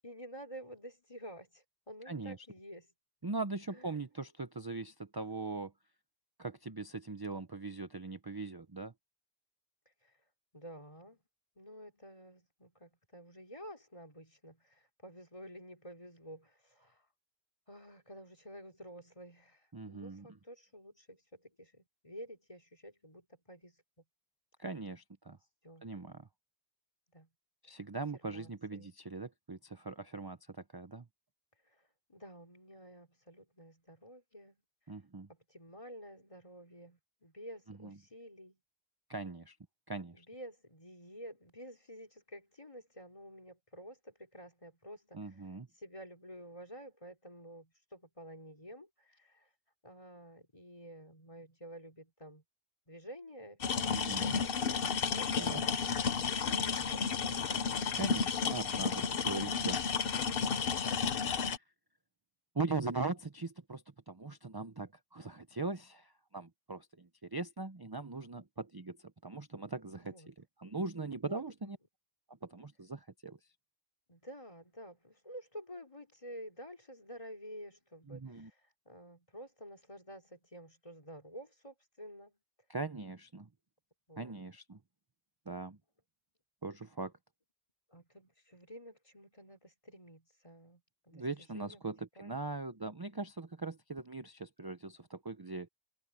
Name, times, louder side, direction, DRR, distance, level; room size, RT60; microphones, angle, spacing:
voice 1, 0.0-2.9 3.7-4.0 10.0-10.2 10.5-11.2 11.6-17.1 17.7-23.8 25.6-25.9 27.1-27.3 27.6-27.8 28.2-28.9 31.7-34.6 35.3-38.6 40.2-45.4 45.8-49.5 49.8-52.4 52.9-55.3 56.5-57.4 69.9-70.3 71.2-71.8 74.1-82.4 84.1-84.4 87.9-91.3 91.5-91.8 92.2-92.6, equal, 30° left, 3.4 m, -51 dB
voice 2, 2.1-2.5 3.2-5.7 6.4-8.9 19.7-20.3 24.6-25.4 25.8-26.3 27.6-31.1 34.9-35.3 37.7-38.0 39.1-39.6 39.9-40.3 45.1-45.7 53.9-54.3 55.4-55.6 57.9-59.8 61.1-61.6 62.5-71.8 72.3-73.4 78.1-78.5 82.7-83.5 84.2-84.8 85.5-85.8 86.6-87.1 91.1-95.7, right 3 dB, 25° right, 0.7 m, -40 dB
sound 1, 53.6-61.6, left 6 dB, 60° left, 1.1 m, -32 dB
omnidirectional pair, 1.1 m